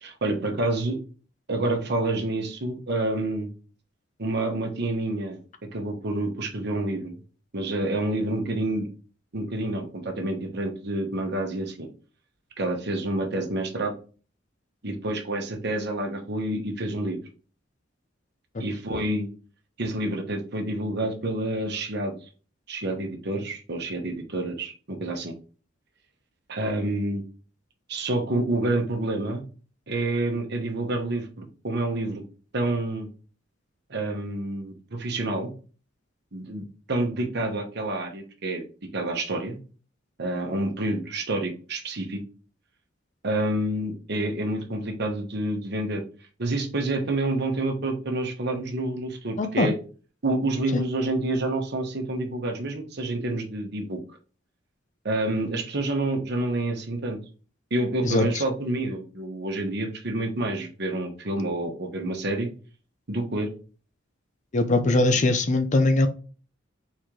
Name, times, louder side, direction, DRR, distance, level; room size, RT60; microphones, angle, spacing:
voice 1, 0.0-1.0 1.5-3.5 4.2-5.4 5.7-7.1 7.5-8.9 9.3-11.9 12.6-13.9 14.8-17.2 18.6-19.3 19.8-22.2 22.7-25.3 26.5-27.2 27.9-29.4 29.9-32.2 32.5-33.1 33.9-35.5 36.3-38.6 38.9-39.6 40.2-42.2 43.2-46.0 46.4-49.7 50.2-54.0 55.0-57.2 57.7-62.5 63.1-63.5, right 2 dB, 60° right, 1.1 m, -28 dB
voice 2, 64.5-66.1, left 2 dB, 40° left, 0.5 m, -21 dB
4.2 x 3.1 x 3.7 m
head